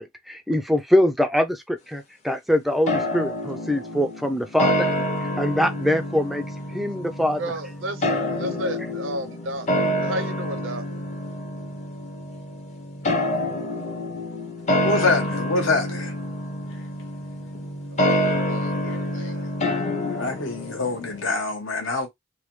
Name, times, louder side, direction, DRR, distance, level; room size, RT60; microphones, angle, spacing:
voice 1, 0.0-4.9 5.2-6.4 6.7-7.4, left 1 dB, ahead, 0.4 m, -23 dB
sound 1, 2.9-21.3, left 1 dB, 35° left, 0.8 m, -27 dB
voice 2, 7.4-9.7 10.0-10.9 15.6-15.8 17.9-19.5, right 1 dB, 75° right, 0.7 m, -33 dB
voice 3, 14.8-16.1 18.1-18.2 18.9-19.3 20.0-22.1, left 3 dB, 75° left, 1.1 m, -26 dB
3.2 x 2.2 x 3.1 m
head